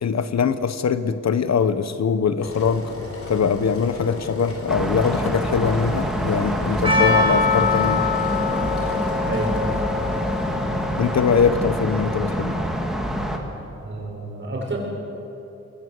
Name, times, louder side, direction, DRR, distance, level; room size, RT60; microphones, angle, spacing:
voice 1, 0.0-2.9 3.3-8.0 11.0-12.6, left 6 dB, 65° left, 11 dB, 1.1 m, -22 dB
Engine, 2.4-11.4, left 2 dB, 50° left, 4.0 m, -35 dB
sound 1, 4.7-13.4, equal, ahead, 2.3 m, -26 dB
Percussion, 6.8-11.8, left 4 dB, 20° right, 3.8 m, -24 dB
voice 2, 9.2-9.8 13.8-14.8, right 2 dB, 40° right, -1 dB, 6.7 m, -29 dB
25.5 x 22.5 x 7.8 m, 2.9 s
wide cardioid pair, 155°, 29 cm